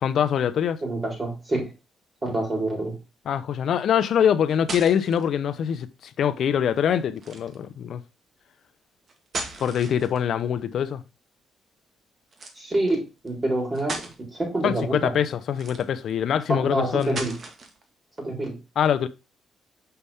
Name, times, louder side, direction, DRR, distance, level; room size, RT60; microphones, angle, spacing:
voice 1, 0.0-0.8 3.3-8.0 9.6-11.0 14.6-17.3 18.8-19.1, left 8 dB, 65° left, 0.7 m, -24 dB
voice 2, 0.8-1.6 2.2-3.0 12.6-15.1 16.5-17.3 18.2-18.6, right 1 dB, 25° right, 4.2 m, -27 dB
sound 1, 4.2-5.2 7.2-7.6 9.1-10.4 12.3-12.6 13.3-13.4 13.7-14.2 15.5-16.1 17.0-17.8, right 3 dB, 50° right, 1.7 m, -36 dB
6.8 x 5.5 x 3.5 m
cardioid pair, 90°, 0 cm